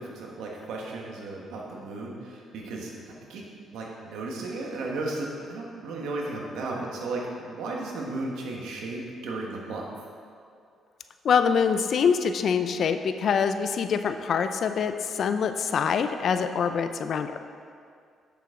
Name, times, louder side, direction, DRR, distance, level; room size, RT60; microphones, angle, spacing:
voice 1, 0.0-2.9 3.3-3.4 3.7-9.8, right 2 dB, 85° right, -1 dB, 1.3 m, -34 dB
voice 2, 11.2-17.4, left 6 dB, 60° left, 9 dB, 0.4 m, -25 dB
7.7 x 6.8 x 3.7 m, 2.3 s
cardioid pair, 90°, 0 cm